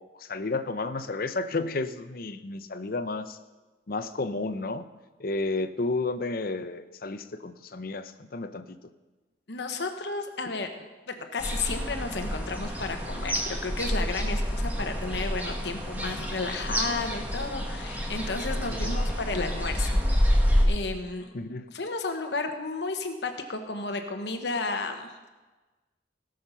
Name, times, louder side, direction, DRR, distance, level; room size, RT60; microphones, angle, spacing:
voice 1, 0.0-3.4 3.9-4.9 5.2-8.8 18.7-19.0 21.3-21.7, left 3 dB, 55° left, 11 dB, 0.7 m, -32 dB
voice 2, 9.5-19.9 20.6-21.3 21.7-25.1, left 3 dB, 70° left, 6 dB, 1.0 m, -33 dB
sound 1, 11.4-20.6, equal, 10° right, 1.7 m, -28 dB
17.5 x 6.5 x 5.6 m, 1.2 s
head